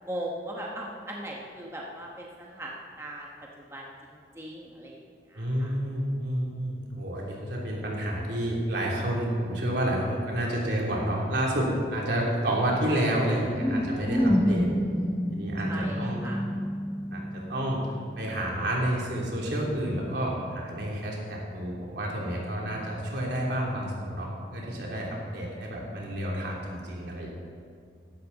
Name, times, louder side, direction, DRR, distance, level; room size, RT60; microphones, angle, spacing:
voice 1, 0.0-3.3 3.7-5.0 5.3-5.7 15.7-16.4, right 1 dB, 15° right, -2 dB, 1.1 m, -39 dB
voice 2, 5.3-14.7 15.3-16.2 17.1-17.8 18.2-27.3, right 1 dB, 75° right, -3 dB, 3.2 m, -29 dB
sound 1, 13.6-18.2, equal, 5° left, 0.7 m, -28 dB
15.0 x 12.0 x 4.1 m, 2.2 s
head